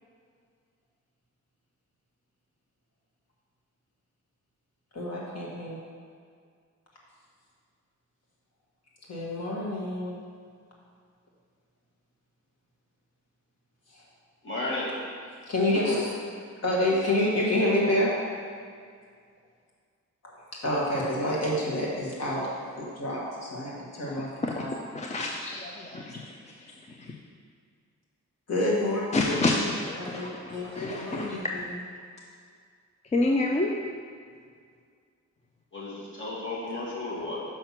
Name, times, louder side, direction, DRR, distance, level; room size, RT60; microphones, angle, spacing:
voice 1, 4.9-5.8 9.1-10.2 13.9-14.0 15.5-16.2 16.6-18.1 20.2-20.4 20.6-22.4 22.7-24.3 24.6-24.7 28.5-29.7 29.9-31.8, left 1 dB, 60° left, -5 dB, 1.7 m, -28 dB
voice 2, 14.4-14.9 17.6-17.7 35.7-37.4, left 2 dB, 40° left, -7 dB, 2.0 m, -33 dB
voice 3, 24.0-24.6 24.9-27.2 29.1-31.4 33.1-33.7, left 2 dB, 25° left, 0 dB, 0.4 m, -29 dB
5.8 x 5.7 x 5.8 m, 2.1 s
wide cardioid pair, 170°, 30 cm